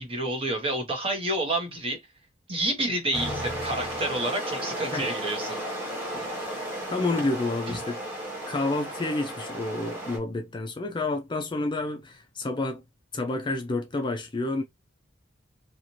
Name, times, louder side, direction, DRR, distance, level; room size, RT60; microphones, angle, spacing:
voice 1, 0.0-2.0 2.5-5.8 7.7-7.8, right 1 dB, 30° right, 0.9 m, -29 dB
sound 1, 3.1-10.2, right 1 dB, 10° right, 1.4 m, -34 dB
voice 2, 6.9-8.0 8.5-12.8 13.1-14.6, left 2 dB, 25° left, 0.4 m, -29 dB
2.7 x 2.5 x 2.9 m
head